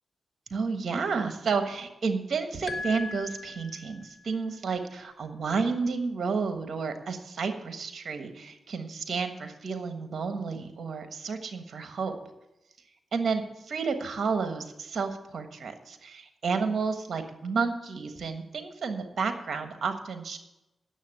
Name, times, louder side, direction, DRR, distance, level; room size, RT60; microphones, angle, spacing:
voice 1, 0.5-12.2 13.1-20.4, right 5 dB, 65° right, 7 dB, 1.4 m, -31 dB
sound 1, 2.7-4.2, left 3 dB, 55° left, 1.1 m, -38 dB
9.2 x 7.0 x 9.0 m, 0.93 s
supercardioid pair, 45°, 0 cm